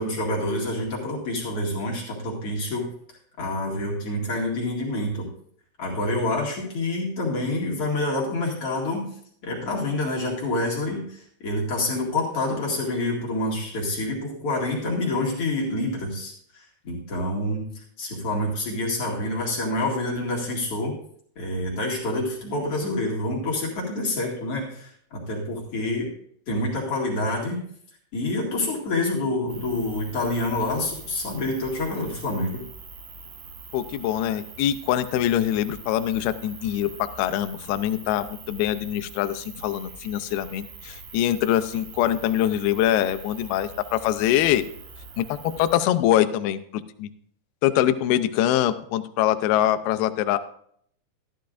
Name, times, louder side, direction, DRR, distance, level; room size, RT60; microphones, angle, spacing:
voice 1, 0.0-2.9 3.4-5.3 5.8-9.1 9.4-20.9 21.4-26.1 26.5-27.6 28.1-32.6, left 2 dB, 45° left, -4 dB, 2.5 m, -27 dB
sound 1, 29.5-45.8, right 4 dB, 65° right, 2.0 m, -43 dB
voice 2, 33.7-44.7 45.2-46.6 47.0-47.1 47.6-50.4, left 12 dB, 80° left, 11 dB, 2.4 m, -23 dB
13.5 x 11.5 x 2.5 m, 0.64 s
omnidirectional pair, 4.8 m